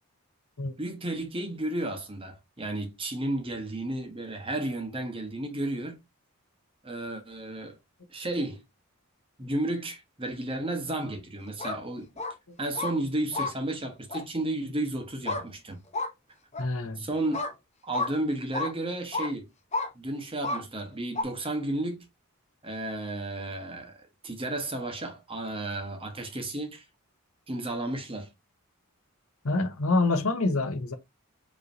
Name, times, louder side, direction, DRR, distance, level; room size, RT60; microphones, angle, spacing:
voice 1, 0.8-6.0 6.8-7.8 8.1-8.6 9.4-12.1 12.6-15.8 17.0-17.5 17.8-19.5 19.9-22.1 22.6-26.9 27.5-28.3, right 1 dB, 25° right, 1.0 m, -33 dB
sound 1, 11.5-11.8 12.2-12.3 12.7-12.9 13.3-13.5 14.1-14.2 15.2-15.4 15.9-16.1 16.5-16.7 17.3-17.5 17.9-18.1 18.5-18.7 19.1-19.3 19.7-19.9 20.4-20.6 21.1-21.2, left 2 dB, 30° left, 0.8 m, -30 dB
voice 2, 16.6-17.0 29.4-30.9, left 2 dB, 75° left, 0.9 m, -26 dB
5.3 x 3.1 x 2.6 m
head